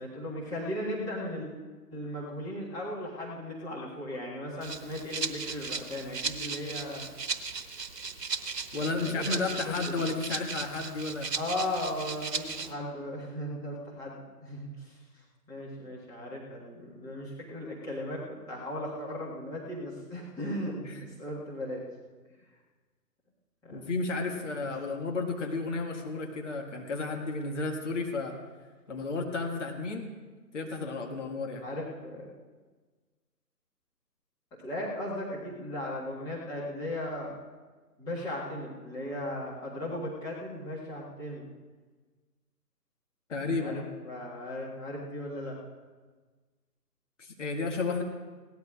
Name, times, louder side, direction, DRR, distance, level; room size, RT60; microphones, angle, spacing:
voice 1, 0.0-1.5 1.9-7.1 8.7-9.2 11.3-15.0 15.5-20.8 21.0-21.8 23.6-23.8 24.3-24.4 31.6-32.3 34.6-37.3 38.0-41.4 43.6-45.6, left 1 dB, 10° left, -7 dB, 1.7 m, -37 dB
Rattle (instrument), 4.6-12.7, right 5 dB, 75° right, 1.2 m, -36 dB
voice 2, 8.7-11.3 20.8-21.0 23.7-28.4 28.9-30.1 30.5-31.6 43.3-43.9 47.2-48.0, left 3 dB, 45° left, 1 dB, 1.9 m, -32 dB
21.0 x 17.5 x 2.5 m, 1.4 s
figure-of-eight pair, 145°, 49 cm